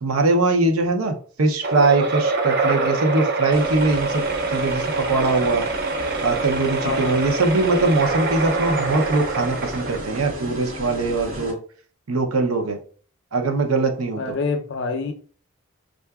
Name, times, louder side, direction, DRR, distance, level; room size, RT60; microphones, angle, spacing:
voice 1, 0.0-4.2 4.5-5.6 6.2-11.6 12.1-12.8 13.3-14.3, right 3 dB, 80° right, 0.7 m, -21 dB
sound 1, 1.6-10.4, right 3 dB, 45° right, 0.4 m, -25 dB
sound 2, 3.5-11.5, equal, 65° right, 1.2 m, -34 dB
voice 2, 6.8-7.2 14.2-15.1, left 4 dB, 55° left, 0.5 m, -26 dB
5.6 x 2.5 x 2.3 m
head